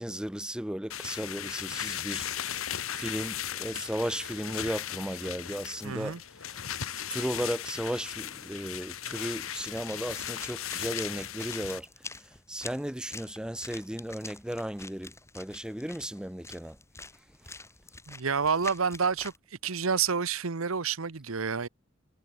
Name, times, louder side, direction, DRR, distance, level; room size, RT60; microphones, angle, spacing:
voice 1, 0.0-2.3 2.6-6.2 6.5-6.6 7.1-11.9 12.5-16.8, right 1 dB, 5° right, 0.6 m, -35 dB
sound 1, 0.9-11.8, left 10 dB, 80° left, 1.3 m, -37 dB
voice 2, 5.8-6.2 18.1-19.3 19.6-21.7, right 5 dB, 80° right, 1.0 m, -29 dB
sound 2, 9.6-19.4, left 3 dB, 15° left, 3.8 m, -46 dB
head